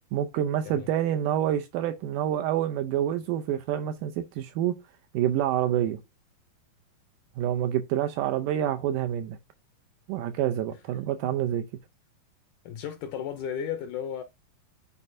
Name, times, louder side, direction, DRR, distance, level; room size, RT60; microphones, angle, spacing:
voice 1, 0.1-4.7 5.1-6.0 7.4-9.4 10.1-11.6, right 11 dB, 85° right, 1.8 m, -27 dB
voice 2, 12.7-14.2, left 8 dB, 80° left, 1.8 m, -34 dB
9.8 x 4.1 x 2.6 m
omnidirectional pair, 4.3 m